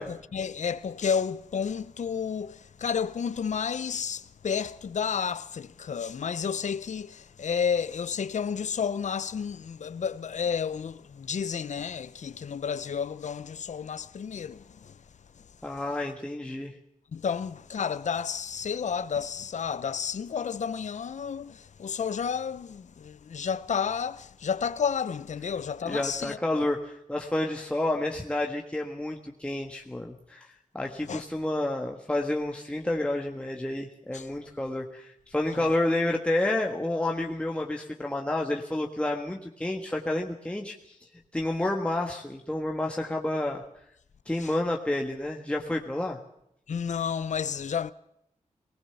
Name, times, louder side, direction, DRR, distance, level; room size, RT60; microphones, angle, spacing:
voice 1, 0.0-15.0 15.4-15.5 17.1-26.4 31.1-31.2 34.1-34.3 35.5-35.7 44.4-44.5 46.7-47.9, left 7 dB, 65° left, 0.7 m, -31 dB
voice 2, 15.6-16.7 25.8-41.0 41.3-43.6 44.3-46.2, left 1 dB, 10° left, 1.5 m, -30 dB
20.0 x 19.0 x 6.9 m
wide cardioid pair, 125°, 13 cm